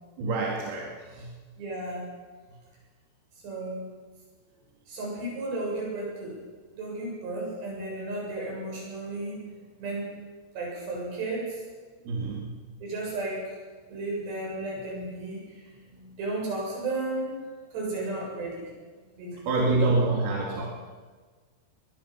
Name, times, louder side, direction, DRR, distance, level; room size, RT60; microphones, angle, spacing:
voice 1, 0.2-1.4 12.1-12.7 19.5-20.7, right 3 dB, 70° right, -2 dB, 4.3 m, -27 dB
voice 2, 1.6-2.0 3.4-3.8 4.9-6.4 6.7-9.4 9.8-10.1 10.6-11.6 12.8-13.4 13.9-15.4 15.9-17.4 17.7-18.7 19.2-19.7, right 2 dB, 90° right, -3 dB, 9.4 m, -33 dB
22.0 x 21.0 x 5.8 m, 1.4 s
omnidirectional pair, 4.8 m